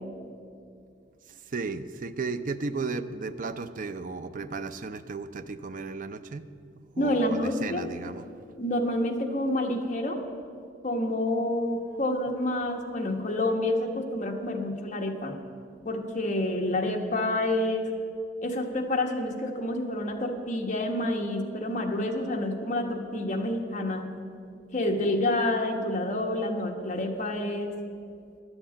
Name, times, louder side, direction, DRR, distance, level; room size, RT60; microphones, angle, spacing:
voice 1, 1.3-6.5 6.9-8.3, right 4 dB, 45° right, 11 dB, 0.5 m, -35 dB
voice 2, 7.0-7.8 8.6-10.2 10.8-15.4 15.8-17.9 18.4-24.1 24.7-27.7, left 1 dB, 45° left, 1 dB, 1.3 m, -28 dB
11.0 x 8.0 x 8.4 m, 2.3 s
head